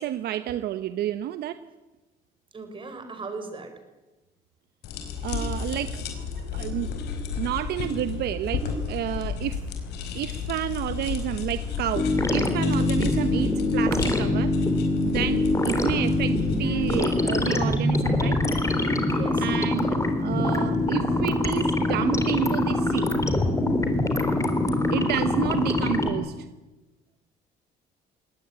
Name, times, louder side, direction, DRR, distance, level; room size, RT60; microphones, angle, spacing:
voice 1, 0.0-1.6 5.2-7.1 7.4-9.6 10.1-12.1 12.3-14.5 15.0-18.4 19.4-23.1 24.9-26.5, right 12 dB, 70° right, 11 dB, 1.1 m, -30 dB
voice 2, 2.5-3.7 19.1-19.5, right 3 dB, 30° right, 7 dB, 5.5 m, -37 dB
sound 1, 4.8-17.0, left 6 dB, 80° left, 4.8 m, -32 dB
sound 2, 12.0-26.1, left 2 dB, 20° left, 3.8 m, -24 dB
21.5 x 18.5 x 9.8 m, 1.1 s
cardioid pair, 110°, 17 cm